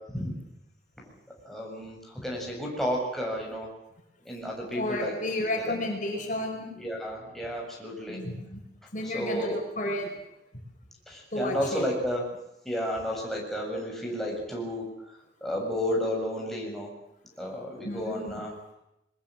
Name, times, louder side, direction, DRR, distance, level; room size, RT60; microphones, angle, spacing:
voice 1, 1.4-3.7 4.2-5.1 5.6-5.7 6.8-8.2 9.0-9.6 11.1-12.2 12.7-14.8 15.4-16.9 17.4-18.5, equal, ahead, -2 dB, 7.3 m, -32 dB
voice 2, 4.7-6.7 8.1-8.6 8.9-10.1 11.3-11.8 17.8-18.4, left 1 dB, 50° left, 1 dB, 5.5 m, -32 dB
22.5 x 21.5 x 7.7 m, 0.86 s
head